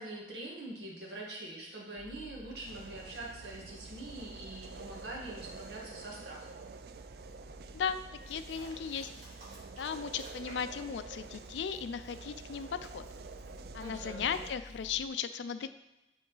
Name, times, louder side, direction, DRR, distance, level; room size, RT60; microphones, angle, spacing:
voice 1, 0.0-6.7 13.8-14.4, right 1 dB, 75° right, -2 dB, 1.6 m, -44 dB
sound 1, 2.0-15.1, left 1 dB, 10° left, 0.6 m, -54 dB
sound 2, 2.6-14.5, right 5 dB, 60° right, 0.3 m, -49 dB
sound 3, 8.1-10.8 11.1-14.9, right 1 dB, 35° right, 2.1 m, -57 dB
voice 2, 8.3-9.1 9.8-13.0 13.7-15.7, left 7 dB, 90° left, 12 dB, 0.4 m, -36 dB
8.4 x 3.9 x 3.9 m, 0.99 s
head